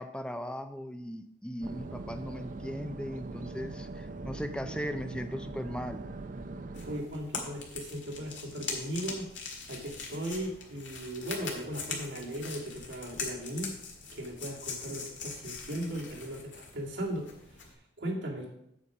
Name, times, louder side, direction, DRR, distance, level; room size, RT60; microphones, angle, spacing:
voice 1, 0.0-6.0, equal, 5° left, 8 dB, 0.5 m, -38 dB
sound 1, 1.6-7.0, right 2 dB, 45° right, 0.5 m, -41 dB
sound 2, 6.7-17.7, left 4 dB, 80° left, 1.9 m, -42 dB
voice 2, 6.9-9.3 9.7-13.7 14.1-17.7 18.0-18.5, right 1 dB, 75° right, -3 dB, 2.4 m, -37 dB
8.4 x 5.1 x 7.2 m, 0.80 s
head